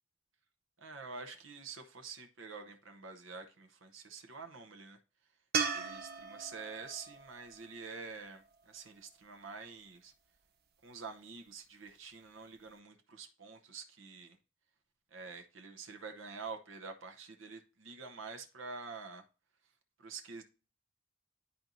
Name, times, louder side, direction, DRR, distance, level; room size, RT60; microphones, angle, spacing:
voice 1, 0.8-5.0 5.7-10.1 10.8-14.4 15.1-19.2 20.0-20.4, right 4 dB, 80° right, 0.9 m, -47 dB
sound 1, 5.5-8.8 12.0-12.1, right 6 dB, 55° right, 0.8 m, -38 dB
10.5 x 4.3 x 2.6 m
head